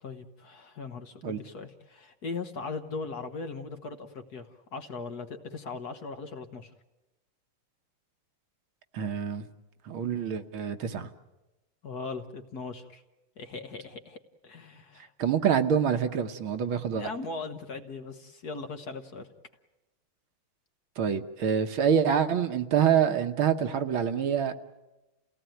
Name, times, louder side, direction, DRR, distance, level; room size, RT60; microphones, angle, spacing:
voice 1, 0.0-6.7 11.8-13.0 13.4-15.1 17.0-19.3, left 4 dB, 50° left, 7 dB, 1.5 m, -39 dB
voice 2, 8.9-9.5 9.9-11.1 15.2-17.1 21.0-24.6, right 8 dB, 70° right, 7 dB, 1.8 m, -26 dB
29.5 x 17.5 x 9.1 m, 1.0 s
omnidirectional pair, 2.4 m